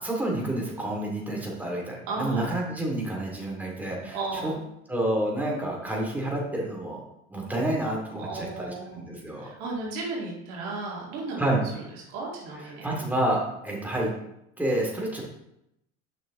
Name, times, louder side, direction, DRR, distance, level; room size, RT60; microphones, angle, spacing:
voice 1, 0.0-4.5 4.9-7.0 7.3-9.5 11.4-11.6 12.8-14.1 14.6-15.2, right 1 dB, 5° right, -3 dB, 2.5 m, -29 dB
voice 2, 2.1-2.5 4.1-4.6 8.2-9.0 9.4-11.5 11.7-11.8 12.1-12.9, right 3 dB, 75° right, -3 dB, 2.1 m, -34 dB
7.4 x 6.0 x 3.1 m, 0.82 s
hypercardioid pair, 70°, 37 cm